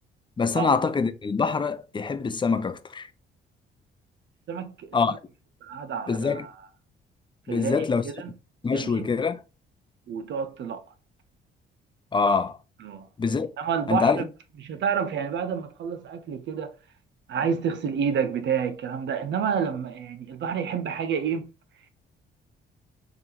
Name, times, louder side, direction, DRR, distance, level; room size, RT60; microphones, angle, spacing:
voice 1, 0.4-3.1 4.9-5.2 6.1-6.5 7.5-8.0 8.6-9.4 12.1-12.6 13.2-13.5 13.9-14.2, left 5 dB, 25° left, 0.5 m, -24 dB
voice 2, 4.5-5.2 5.6-6.5 7.5-8.3 8.6-9.1 10.1-10.8 12.8-13.1 13.6-14.3 14.6-16.7 17.3-21.5, right 7 dB, 65° right, 0.7 m, -29 dB
3.8 x 3.6 x 2.8 m
cardioid pair, 90°, 20 cm